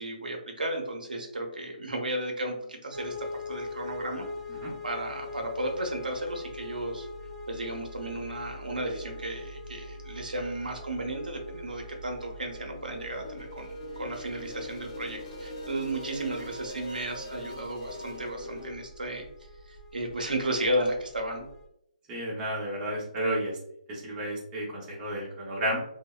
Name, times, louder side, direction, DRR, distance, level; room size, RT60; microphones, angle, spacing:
voice 1, 0.0-4.3 4.8-7.1 7.5-19.3 19.6-21.5, right 1 dB, 85° right, 2 dB, 0.6 m, -34 dB
sound 1, 2.9-21.6, left 2 dB, 50° right, 0.8 m, -43 dB
sound 2, 12.7-18.7, left 1 dB, 30° left, 0.5 m, -42 dB
voice 2, 22.1-23.6 23.9-25.8, right 1 dB, 20° right, -4 dB, 0.7 m, -32 dB
2.7 x 2.1 x 2.2 m, 0.76 s
hypercardioid pair, 145°, 5 cm